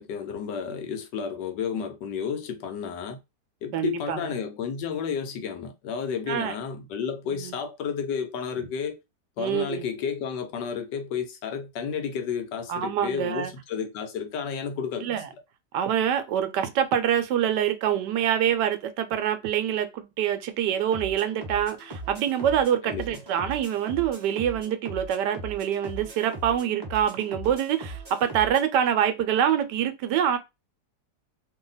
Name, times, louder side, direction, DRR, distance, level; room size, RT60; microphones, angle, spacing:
voice 1, 0.0-3.2 3.6-9.0 9.4-15.2 22.8-23.2, left 7 dB, 80° left, 1.3 m, -32 dB
voice 2, 3.7-4.3 6.3-6.5 7.3-7.5 9.4-9.8 12.7-13.5 15.0-15.3 15.7-30.4, right 9 dB, 75° right, 1.2 m, -25 dB
rind a casa, 20.9-28.7, right 2 dB, 20° right, 0.8 m, -40 dB
2.8 x 2.8 x 3.9 m
omnidirectional pair, 1.9 m